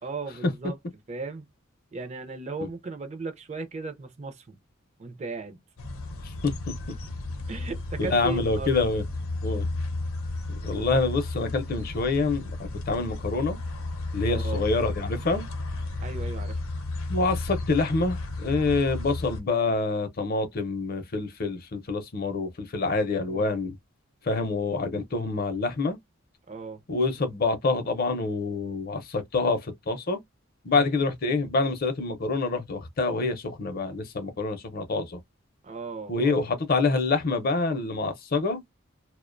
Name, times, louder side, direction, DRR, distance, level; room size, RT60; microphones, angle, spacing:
voice 1, 0.0-0.8 1.1-1.5 1.9-4.6 5.0-5.6 7.5-8.9 14.3-14.6 16.0-16.6 23.3-23.5 26.5-26.8 30.7-30.9 35.6-36.3, right 4 dB, 35° right, 0.4 m, -36 dB
sound 1, 5.8-19.4, left 2 dB, 85° left, 0.6 m, -33 dB
voice 2, 8.0-9.0 9.4-9.7 10.6-13.6 14.1-15.5 17.1-23.8 24.2-26.0 26.9-30.2 30.6-35.2 36.1-38.6, left 3 dB, 45° left, 0.5 m, -26 dB
2.4 x 2.1 x 2.4 m
head